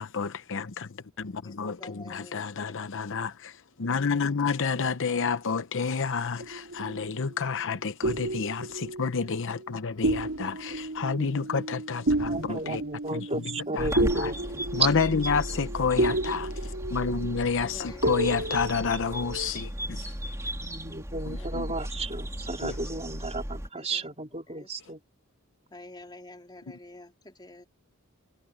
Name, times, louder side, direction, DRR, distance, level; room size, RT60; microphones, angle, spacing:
voice 1, 0.0-12.8 13.1-13.4 13.7-14.3 14.7-20.1 21.3-21.6 22.6-22.8, left 5 dB, 60° left, 0.8 m, -30 dB
voice 2, 1.4-2.9 4.7-5.3 9.9-10.1 10.4-10.5 12.0-12.3 14.4-15.0 15.9-16.2 17.5-18.2 20.8-20.9 21.4-21.8 22.9-23.2 23.7-24.2 24.5-24.7 25.7-27.7, left 2 dB, 20° left, 3.6 m, -49 dB
sound 1, 6.4-7.4 8.0-9.7 10.0-19.6, right 1 dB, 65° right, 3.0 m, -31 dB
voice 3, 12.2-14.6 15.3-15.4 20.6-25.0, right 2 dB, 30° right, 4.4 m, -35 dB
sound 2, 13.8-23.7, equal, 15° right, 3.3 m, -36 dB
head